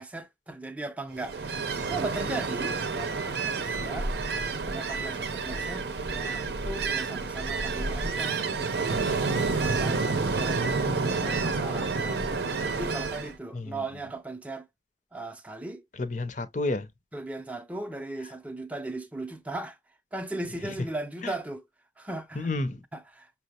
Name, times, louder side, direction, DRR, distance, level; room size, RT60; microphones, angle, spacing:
voice 1, 0.0-4.1 4.7-8.6 9.0-12.3 12.7-14.7 15.1-15.8 17.1-19.8 20.1-21.6 22.0-22.5 22.9-23.3, right 2 dB, 10° right, 0.5 m, -38 dB
Ocean, 1.2-13.3, right 4 dB, 65° right, 0.6 m, -29 dB
voice 2, 10.6-11.2 13.5-13.8 16.0-16.9 20.6-20.8 21.2-21.3 22.4-22.8, left 2 dB, 45° left, 0.6 m, -31 dB
5.8 x 2.0 x 2.8 m
head